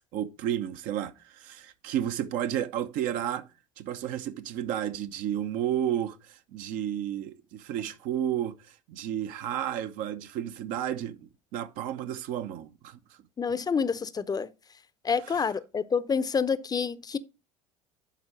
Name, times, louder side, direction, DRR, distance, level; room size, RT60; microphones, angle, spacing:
voice 1, 0.0-3.5 3.8-8.6 8.9-13.0 15.3-15.4, right 10 dB, 60° right, 0.9 m, -32 dB
voice 2, 13.4-14.5 15.0-17.2, left 6 dB, 25° left, 0.7 m, -28 dB
11.0 x 4.4 x 5.0 m
hypercardioid pair, 70°, 16 cm